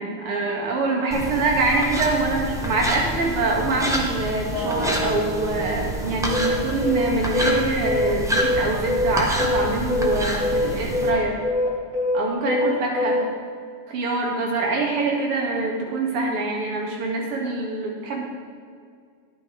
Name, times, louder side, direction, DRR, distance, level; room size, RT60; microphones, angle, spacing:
voice 1, 0.0-11.4 12.1-13.2 13.9-18.2, right 3 dB, 75° right, -1 dB, 2.3 m, -25 dB
sound 1, 1.1-11.1, right 1 dB, 5° right, 0.6 m, -28 dB
sound 2, 4.5-8.4, equal, 15° left, 1.7 m, -33 dB
sound 3, 6.3-13.2, left 2 dB, 45° right, 2.1 m, -23 dB
10.0 x 8.6 x 3.5 m, 2.1 s
cardioid pair, 165°, 47 cm